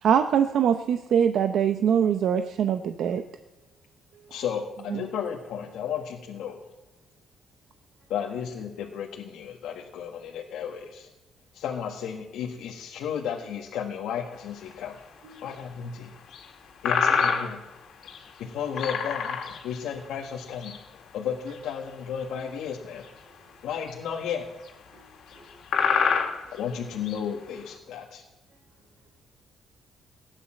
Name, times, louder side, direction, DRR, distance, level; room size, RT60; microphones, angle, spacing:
voice 1, 0.0-3.2 4.9-5.0, right 8 dB, 60° right, 0.7 m, -23 dB
voice 2, 4.3-6.6 8.1-11.1 11.5-15.0 15.4-16.1 16.8-17.6 18.4-23.0 23.6-24.5 26.5-28.2, left 8 dB, 85° left, 1.5 m, -33 dB
sound 1, 14.7-14.8 15.4-15.5 16.3-16.5 16.9-17.7 18.0-18.3 18.7-19.8 20.4-20.8 21.5-21.7 23.0-23.1 23.8-23.9 24.7-24.8 25.3-25.4 25.7-27.2, left 6 dB, 65° left, 2.4 m, -26 dB
voice 3, 24.9-25.6 26.1-26.5 28.5-28.6, right 1 dB, 80° right, 3.7 m, -56 dB
17.5 x 9.9 x 7.4 m
cardioid pair, 140°, 0 cm